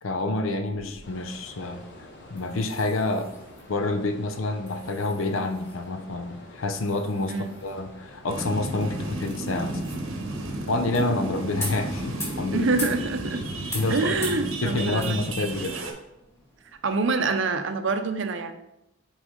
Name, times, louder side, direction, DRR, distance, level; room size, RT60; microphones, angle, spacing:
voice 1, 0.0-1.8 2.3-3.3 3.7-9.8 10.7-12.7 13.7-15.7, left 2 dB, 75° left, 8 dB, 0.6 m, -28 dB
sound 1, 0.5-17.4, left 1 dB, 15° left, 2.1 m, -43 dB
sound 2, 1.0-12.3, left 1 dB, 60° left, 1.0 m, -48 dB
sound 3, 8.3-15.9, right 2 dB, 80° right, 0.9 m, -33 dB
voice 2, 12.5-13.4 13.9-15.2 16.8-18.5, right 3 dB, 65° right, 8 dB, 0.6 m, -26 dB
6.2 x 4.1 x 3.7 m, 0.87 s
head